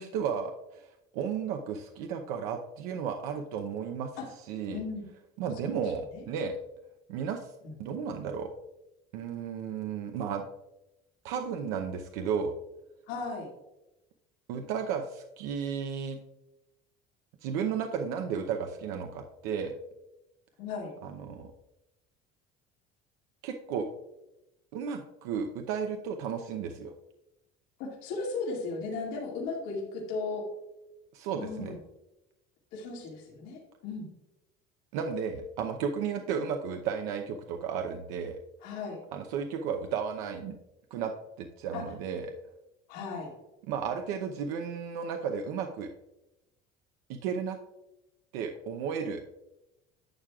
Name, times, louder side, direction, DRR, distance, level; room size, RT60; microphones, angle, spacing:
voice 1, 0.0-4.1 4.5-4.8 5.4-6.6 7.1-7.5 7.8-8.5 9.1-10.4 11.2-12.5 14.5-16.2 17.4-19.7 21.0-21.5 23.4-23.9 24.7-26.9 31.1-31.8 34.9-38.4 39.1-40.6 40.9-41.1 41.4-42.3 43.7-45.9 47.1-47.6 48.3-49.2, right 7 dB, 85° right, 4 dB, 0.7 m, -33 dB
voice 2, 4.7-5.0 5.6-6.2 7.6-7.8 13.1-13.5 20.6-20.9 27.8-30.4 31.4-31.8 32.7-34.1 38.6-39.0 41.7-41.8 42.9-43.3, left 4 dB, 85° left, -3 dB, 2.2 m, -36 dB
11.5 x 7.5 x 2.4 m, 0.94 s
cardioid pair, 145°, 19 cm